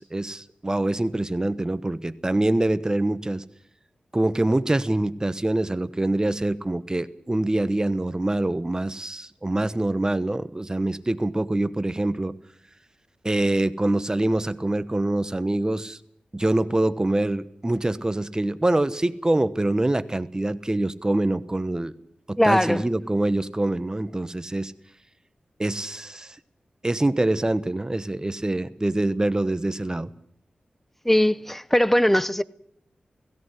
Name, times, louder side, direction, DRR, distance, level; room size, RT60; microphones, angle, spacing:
voice 1, 0.0-3.4 4.1-12.3 13.2-16.0 16.3-21.9 22.3-24.7 25.6-26.4 26.8-30.1, right 1 dB, 25° right, 1.2 m, -25 dB
voice 2, 22.4-22.9 31.0-32.4, equal, 5° left, 0.8 m, -20 dB
17.0 x 16.5 x 9.7 m
cardioid pair, 60°, 3 cm